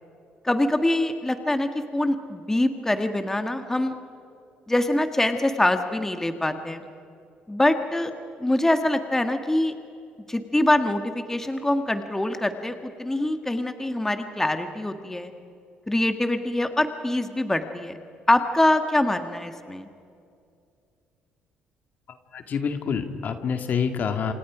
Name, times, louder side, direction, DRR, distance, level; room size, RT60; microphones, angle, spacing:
voice 1, 0.4-3.9 4.7-6.8 7.5-8.1 8.4-9.7 10.3-15.3 15.9-18.0 18.3-19.9, left 1 dB, 10° left, 7 dB, 1.7 m, -24 dB
voice 2, 22.3-24.3, left 6 dB, 55° left, 6 dB, 2.1 m, -27 dB
28.5 x 26.5 x 5.0 m, 2.4 s
supercardioid pair, 80°, 4 cm